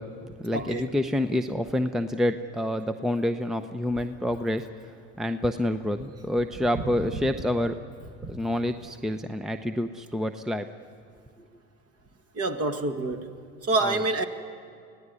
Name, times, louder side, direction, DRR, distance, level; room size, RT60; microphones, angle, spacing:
voice 1, 0.0-4.7 5.2-7.7 8.3-10.7 13.8-14.0, left 1 dB, ahead, 9 dB, 0.7 m, -28 dB
voice 2, 0.5-0.9 8.2-8.3 12.3-13.3 13.6-14.2, right 2 dB, 40° right, 7 dB, 2.0 m, -27 dB
23.5 x 16.5 x 9.7 m, 2.3 s
hypercardioid pair, 80°, 39 cm